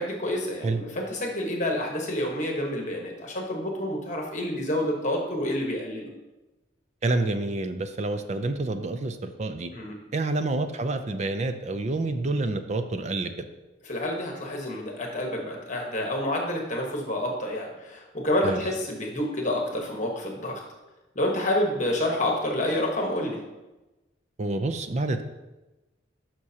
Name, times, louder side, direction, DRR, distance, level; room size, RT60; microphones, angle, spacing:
voice 1, 0.0-6.1 9.7-10.0 13.8-20.6 21.1-23.4, left 1 dB, 40° left, 0 dB, 1.3 m, -28 dB
voice 2, 7.0-9.7 10.1-13.3 18.4-18.6 24.4-25.2, right 2 dB, 35° right, 9 dB, 0.4 m, -28 dB
11.0 x 5.9 x 2.8 m, 1.1 s
head